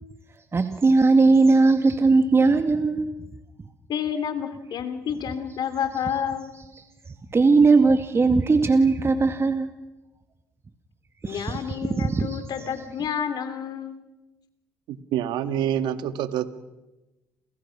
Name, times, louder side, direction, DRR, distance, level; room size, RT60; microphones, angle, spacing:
voice 1, 0.5-3.1 7.3-9.7 11.2-12.4, right 3 dB, 35° right, 6 dB, 2.1 m, -19 dB
voice 2, 3.9-6.5 11.2-14.0, left 8 dB, 65° left, 10 dB, 3.3 m, -29 dB
voice 3, 14.9-16.5, right 10 dB, 75° right, 10 dB, 1.7 m, -27 dB
29.0 x 29.0 x 6.1 m, 1.1 s
supercardioid pair, 60°, 8 cm